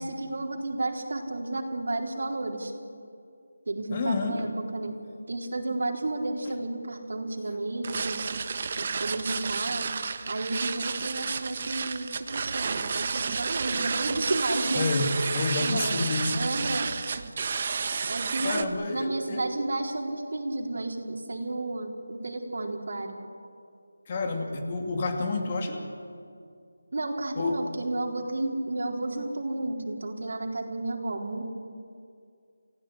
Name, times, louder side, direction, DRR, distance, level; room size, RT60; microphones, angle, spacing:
voice 1, 0.0-2.7 3.7-4.9 5.3-8.2 8.8-9.9 10.3-14.9 15.3-16.9 18.1-23.2 26.9-31.4, right 2 dB, 60° right, 2 dB, 4.2 m, -32 dB
voice 2, 3.9-4.5 14.7-16.4 18.4-19.5 24.1-25.9 27.4-27.7, left 3 dB, 30° left, 4 dB, 2.6 m, -29 dB
sound 1, 7.8-18.6, right 5 dB, 35° right, 1.2 m, -31 dB
29.5 x 16.5 x 9.9 m, 2.4 s
figure-of-eight pair, 165°, 0 cm